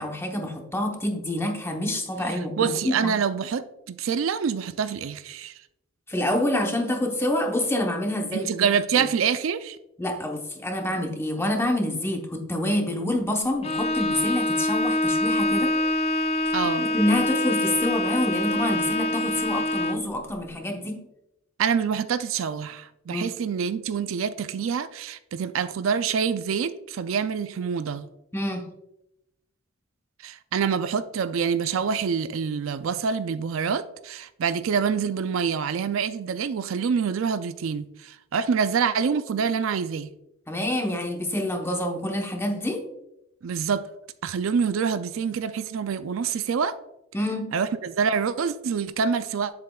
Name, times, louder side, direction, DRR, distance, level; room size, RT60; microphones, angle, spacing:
voice 1, 0.0-3.1 6.1-8.5 9.0-9.1 10.0-15.8 16.8-21.0 23.1-23.2 28.3-28.7 40.5-42.8 47.1-47.5, left 1 dB, 10° left, 0.9 m, -27 dB
voice 2, 2.3-5.6 8.3-9.8 16.5-16.9 21.6-28.1 30.2-40.1 43.4-43.9 44.2-46.8 47.5-49.5, right 6 dB, 75° right, 0.4 m, -26 dB
Bowed string instrument, 13.6-20.1, left 2 dB, 30° left, 0.3 m, -25 dB
7.7 x 7.4 x 2.3 m
head